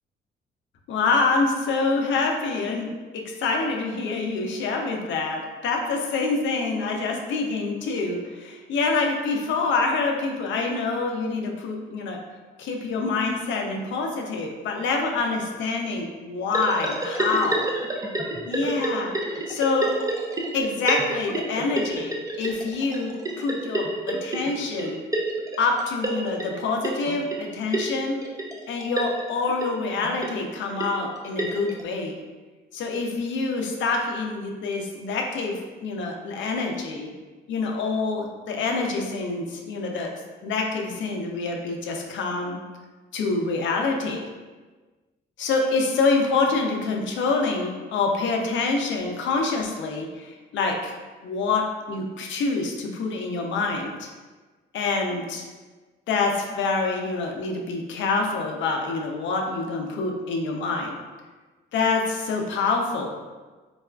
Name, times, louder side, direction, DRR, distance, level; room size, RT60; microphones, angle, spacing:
voice 1, 0.9-12.2 12.6-17.7 18.5-19.1 19.5-20.0 20.5-25.0 25.6-28.2 28.7-32.2 32.7-37.1 37.5-40.1 40.4-42.6 43.1-44.2 45.4-50.9 51.2-54.1 54.7-55.4 56.1-60.9 61.7-63.1, left 3 dB, 75° left, 2 dB, 0.5 m, -26 dB
sound 1, 16.5-31.8, right 2 dB, 15° right, 0.5 m, -30 dB
4.1 x 2.3 x 2.2 m, 1.3 s
cardioid pair, 90°, 20 cm